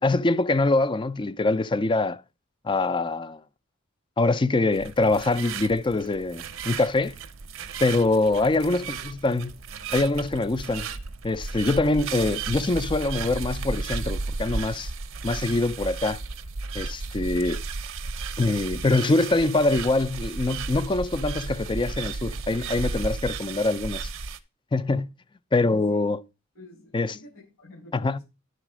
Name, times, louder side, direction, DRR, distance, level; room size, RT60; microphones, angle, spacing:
voice 1, 0.0-2.2 2.6-3.4 4.2-7.2 7.8-8.8 9.2-9.5 9.9-10.9 11.2-14.9 15.2-16.2 16.7-17.6 18.4-24.1 24.7-25.1 25.5-26.2 26.9-27.2 27.9-28.2, left 2 dB, 20° left, 0.4 m, -24 dB
sound 1, 4.7-24.4, right 4 dB, 65° right, 0.8 m, -34 dB
voice 2, 8.6-9.1 25.6-26.1 26.5-28.2, left 2 dB, 65° left, 6.7 m, -46 dB
11.0 x 4.1 x 6.1 m
head